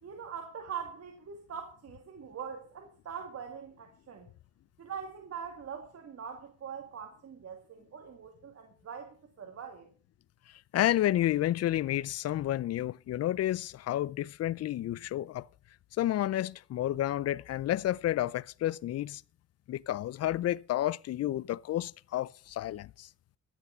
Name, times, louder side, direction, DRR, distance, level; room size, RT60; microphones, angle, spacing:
voice 1, 0.0-4.3 4.8-9.9, right 7 dB, 55° right, 2.2 m, -43 dB
voice 2, 10.7-15.4 16.0-19.2 19.7-23.1, left 13 dB, 55° left, 0.5 m, -30 dB
13.5 x 8.3 x 5.7 m
cardioid pair, 90°, 30 cm